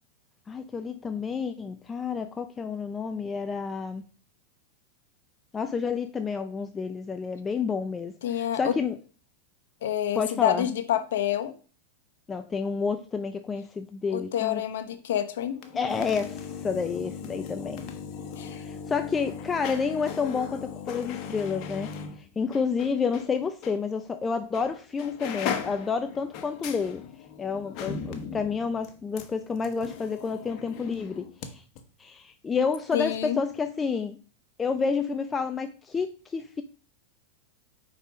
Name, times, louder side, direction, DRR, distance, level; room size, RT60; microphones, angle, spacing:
voice 1, 0.5-4.0 5.5-9.0 10.1-10.7 12.3-14.6 15.7-17.8 18.4-27.0 27.4-31.6 32.0-34.2 34.6-36.6, left 5 dB, 20° left, 0.5 m, -30 dB
voice 2, 8.2-8.8 9.8-11.5 14.1-15.6 18.4-18.6 32.9-33.4, left 11 dB, 75° left, 1.0 m, -28 dB
sound 1, 15.5-23.3 23.6-23.8 24.5-24.7 25.0-31.5 31.8-31.9, left 7 dB, 45° left, 1.2 m, -38 dB
5.5 x 4.1 x 4.9 m
hypercardioid pair, 115°, 0 cm